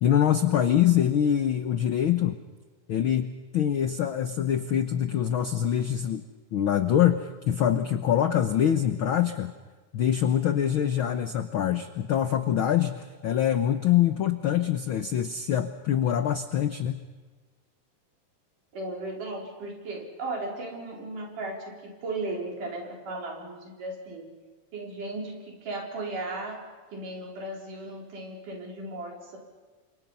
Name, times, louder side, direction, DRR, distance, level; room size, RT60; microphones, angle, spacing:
voice 1, 0.0-2.4 2.9-6.2 6.5-9.5 9.9-17.0, left 10 dB, 85° left, 10 dB, 1.1 m, -24 dB
voice 2, 18.7-24.3 24.7-29.4, right 2 dB, 80° right, 0 dB, 5.8 m, -36 dB
29.5 x 25.5 x 5.5 m, 1.4 s
omnidirectional pair, 3.6 m